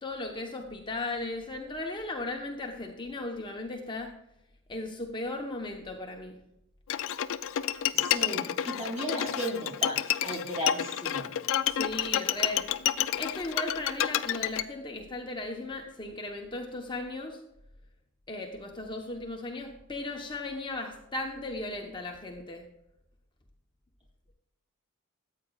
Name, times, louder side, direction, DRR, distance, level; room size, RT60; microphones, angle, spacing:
voice 1, 0.0-4.1 4.7-6.4 11.6-12.6 13.2-17.4 18.3-22.6, left 2 dB, 20° left, 1 dB, 0.9 m, -36 dB
Bowed string instrument, 6.9-14.6, left 11 dB, 65° left, 0.4 m, -29 dB
voice 2, 7.9-11.3, equal, 30° right, -1 dB, 2.9 m, -35 dB
14.0 x 8.4 x 2.4 m, 0.83 s
head